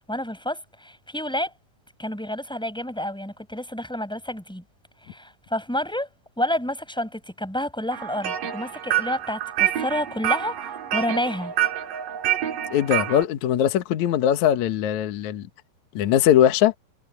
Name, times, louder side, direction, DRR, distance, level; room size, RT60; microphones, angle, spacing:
voice 1, 0.1-1.5 2.0-4.6 5.0-6.1 6.4-11.5, left 1 dB, ahead, 5.3 m, -29 dB
sound 1, 7.9-13.2, right 11 dB, 50° right, 3.4 m, -27 dB
voice 2, 12.7-15.5 15.9-16.7, left 10 dB, 75° left, 1.7 m, -20 dB
omnidirectional pair, 5.5 m